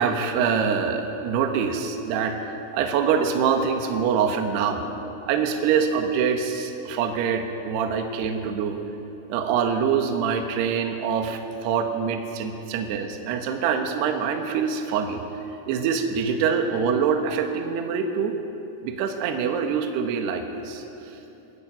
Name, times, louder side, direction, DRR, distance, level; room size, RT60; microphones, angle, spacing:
voice 1, 0.0-2.4 2.7-4.9 5.3-8.8 9.3-15.2 15.7-18.3 18.8-20.8, right 6 dB, 70° right, 4 dB, 3.1 m, -24 dB
22.5 x 14.0 x 8.8 m, 2.9 s
omnidirectional pair, 5.5 m